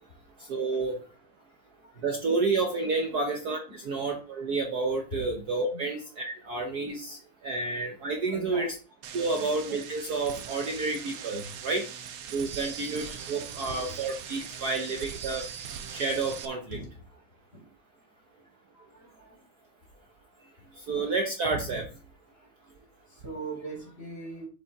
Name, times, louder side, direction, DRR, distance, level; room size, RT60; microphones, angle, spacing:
voice 1, 0.4-1.0 2.0-8.7 9.1-11.8 12.3-15.4 15.9-16.8 20.8-21.9, right 3 dB, 55° right, 2 dB, 1.4 m, -30 dB
voice 2, 8.3-8.7 9.3-9.5 12.5-12.8 13.5-13.9 16.7-16.9 17.5-17.7 18.7-19.4 20.9-21.1 23.1-24.5, right 2 dB, 30° left, -1 dB, 4.2 m, -41 dB
sound 1, 9.0-16.5, right 8 dB, 80° right, 1.7 m, -41 dB
7.2 x 7.1 x 3.6 m, 0.36 s
omnidirectional pair, 2.3 m